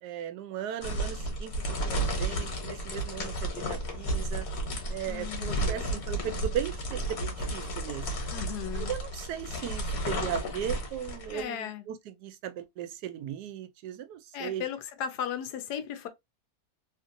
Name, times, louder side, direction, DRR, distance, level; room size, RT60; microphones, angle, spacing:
voice 1, 0.0-1.6 1.8-4.5 4.9-8.2 8.7-14.7, right 9 dB, 90° right, 1.2 m, -37 dB
sound 1, 0.8-11.4, right 1 dB, 65° left, 1.5 m, -33 dB
voice 2, 5.1-5.9 8.3-8.9 11.3-11.8 14.3-16.1, left 9 dB, 85° left, 1.2 m, -36 dB
3.1 x 2.5 x 2.5 m
omnidirectional pair, 1.7 m